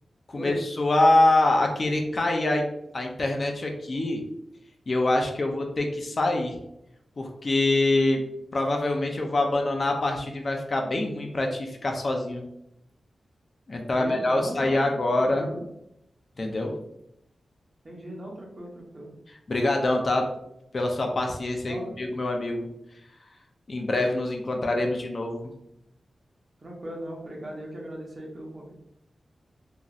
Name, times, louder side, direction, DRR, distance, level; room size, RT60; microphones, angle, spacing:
voice 1, 0.3-2.7 2.9-4.2 4.9-6.6 7.2-8.2 8.5-12.4 13.7-15.5 16.4-16.7 19.5-20.2 20.7-22.7 23.7-25.5, left 2 dB, 45° left, 2 dB, 0.4 m, -25 dB
voice 2, 14.0-14.9 15.2-15.6 17.8-19.1 21.7-22.0 26.6-28.7, right 1 dB, 35° right, -2 dB, 0.9 m, -38 dB
3.0 x 2.6 x 2.4 m, 0.79 s
wide cardioid pair, 110°, 0 cm